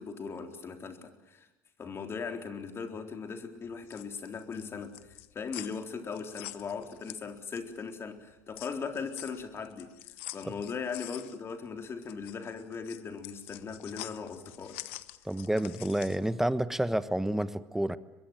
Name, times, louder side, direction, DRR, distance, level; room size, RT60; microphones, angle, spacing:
voice 1, 0.0-1.5 1.8-14.8, left 5 dB, 40° left, 6 dB, 3.8 m, -39 dB
sound 1, 3.7-7.8 8.2-16.3, left 18 dB, 80° left, 0.9 m, -46 dB
voice 2, 15.2-18.0, right 1 dB, 5° right, 14 dB, 1.3 m, -29 dB
23.5 x 22.0 x 9.2 m, 0.94 s
hypercardioid pair, 75°, 7 cm